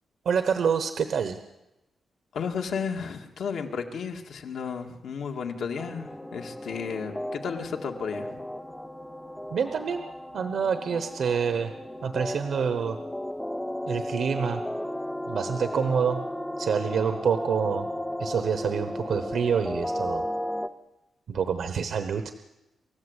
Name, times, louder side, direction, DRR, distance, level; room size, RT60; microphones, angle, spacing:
voice 1, 0.2-1.4 9.5-10.0 10.3-11.7 12.0-13.0 13.9-14.6 15.3-16.2 16.6-17.9 18.2-20.2 21.3-22.3, right 6 dB, 60° right, 8 dB, 1.0 m, -27 dB
voice 2, 2.3-8.4 15.7-16.0, left 6 dB, 70° left, 3 dB, 2.1 m, -33 dB
sound 1, 5.8-20.7, left 1 dB, 5° left, 0.7 m, -35 dB
28.5 x 14.5 x 8.2 m, 0.97 s
wide cardioid pair, 180°, 0 cm